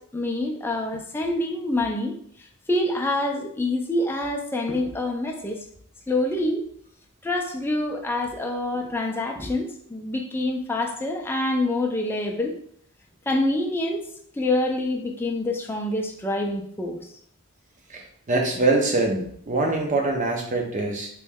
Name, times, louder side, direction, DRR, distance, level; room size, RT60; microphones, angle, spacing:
voice 1, 0.1-2.1 2.7-5.6 6.1-6.6 7.2-12.5 13.3-14.1 14.4-17.0, left 1 dB, 10° left, 1 dB, 0.4 m, -26 dB
voice 2, 17.9-21.1, right 2 dB, 35° right, 1 dB, 0.7 m, -24 dB
3.1 x 3.1 x 3.5 m, 0.64 s
head